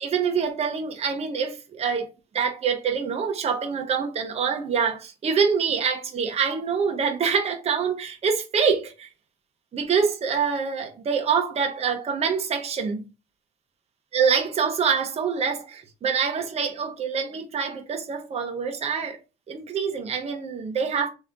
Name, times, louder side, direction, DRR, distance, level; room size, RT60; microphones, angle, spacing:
voice 1, 0.0-2.1 2.3-9.1 9.7-13.0 14.1-19.2 19.5-21.1, right 6 dB, 40° right, 0.9 m, -25 dB
3.5 x 3.1 x 3.7 m
cardioid pair, 110°, 17 cm